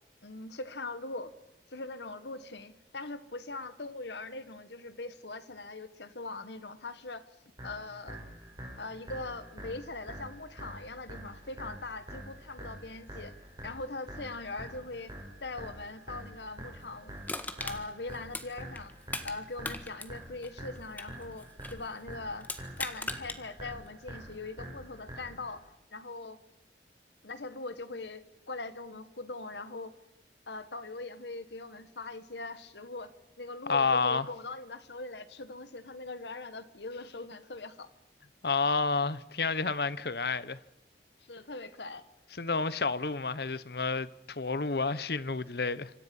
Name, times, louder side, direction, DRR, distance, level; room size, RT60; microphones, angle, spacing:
voice 1, 0.2-1.3 1.7-7.2 7.6-8.2 8.8-13.3 13.6-15.1 15.4-17.1 17.6-18.9 19.2-22.5 22.8-26.4 27.2-29.9 30.5-33.1 33.4-37.9 41.3-42.0, left 3 dB, 80° left, 1.7 m, -41 dB
sound 1, 7.6-25.6, right 1 dB, 25° right, 7.2 m, -46 dB
Crushing, 17.3-19.4 19.6-21.8 22.4-23.4 23.9-24.0, left 2 dB, 10° left, 1.6 m, -39 dB
voice 2, 33.7-34.3 38.4-40.6 42.4-45.9, left 4 dB, 65° left, 0.9 m, -30 dB
26.5 x 26.0 x 5.5 m
head